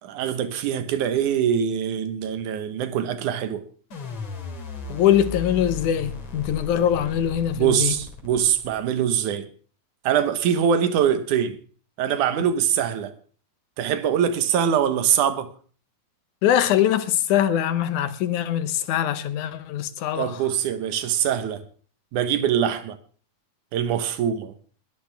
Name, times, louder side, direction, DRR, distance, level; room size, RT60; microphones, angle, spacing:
voice 1, 0.0-3.7 7.5-9.5 10.0-11.6 12.0-13.2 13.8-15.5 20.2-21.6 22.1-23.0 23.7-24.5, right 9 dB, 80° right, 2.6 m, -23 dB
sound 1, 3.9-9.0, left 4 dB, 65° left, 4.3 m, -36 dB
voice 2, 4.9-7.9 16.4-20.3, left 10 dB, 80° left, 2.5 m, -22 dB
20.5 x 12.0 x 3.5 m
omnidirectional pair, 3.5 m